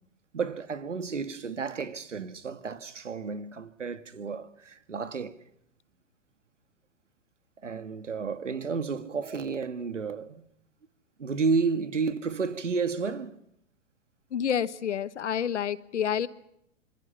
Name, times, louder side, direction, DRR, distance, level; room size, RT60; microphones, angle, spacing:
voice 1, 0.3-5.4 7.6-10.4 11.2-13.4, right 4 dB, 90° right, 1.9 m, -31 dB
voice 2, 14.3-16.3, left 8 dB, 75° left, 1.3 m, -28 dB
26.5 x 25.5 x 5.7 m
hypercardioid pair, 110°, 35 cm